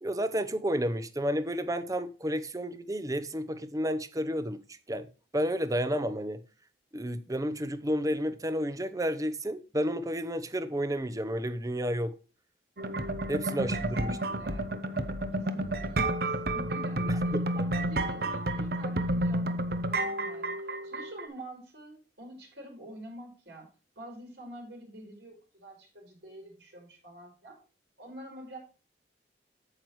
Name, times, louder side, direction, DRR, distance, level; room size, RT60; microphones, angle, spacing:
voice 1, 0.0-4.6 4.9-5.1 5.3-6.4 6.9-12.1 13.3-14.3 17.3-17.4, equal, 20° right, 0.7 m, -31 dB
sound 1, 12.8-21.3, right 1 dB, 60° right, 0.8 m, -31 dB
voice 2, 13.6-14.7 15.3-23.7 24.0-27.6 28.0-28.6, right 1 dB, 80° right, 4.4 m, -47 dB
8.9 x 7.8 x 3.1 m
head